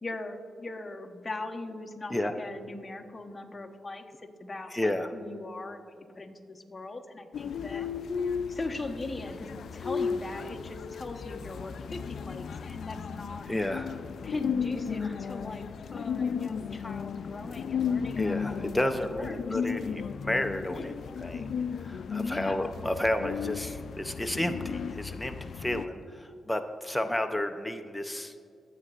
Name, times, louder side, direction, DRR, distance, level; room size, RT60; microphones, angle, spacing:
voice 1, 0.0-4.0 4.4-7.9 8.5-13.5 14.2-15.6 15.9-19.6 20.7-21.0 22.1-22.7, left 2 dB, 30° left, 3 dB, 1.0 m, -40 dB
voice 2, 4.7-5.1 13.5-14.0 18.2-28.3, left 1 dB, 10° left, 6 dB, 0.6 m, -32 dB
sound 1, 7.3-25.9, left 6 dB, 70° left, 0.3 m, -35 dB
21.0 x 7.8 x 2.4 m, 2.3 s
cardioid pair, 65°, 0 cm